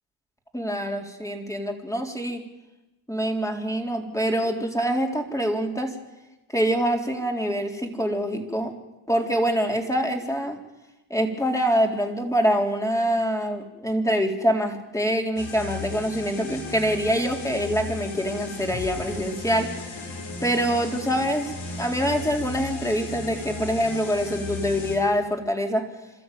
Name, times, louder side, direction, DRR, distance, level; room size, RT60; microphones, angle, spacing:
voice 1, 0.5-2.4 3.1-6.0 6.5-8.7 9.1-10.6 11.1-19.7 20.0-20.1 20.4-25.9, equal, 5° left, 3 dB, 3.8 m, -25 dB
sound 1, 15.4-25.0, left 3 dB, 70° left, 5.3 m, -36 dB
27.5 x 13.0 x 9.4 m, 1.0 s
cardioid pair, 85°, 48 cm